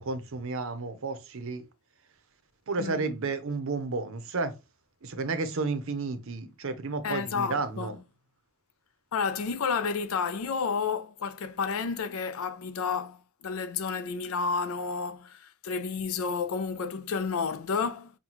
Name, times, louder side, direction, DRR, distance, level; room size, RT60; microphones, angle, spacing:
voice 1, 0.0-1.6 2.7-4.5 5.0-8.0, right 3 dB, 65° right, 0.7 m, -32 dB
voice 2, 7.0-7.9 9.1-13.2 13.4-18.1, left 5 dB, 70° left, 0.4 m, -31 dB
5.5 x 2.2 x 3.0 m
head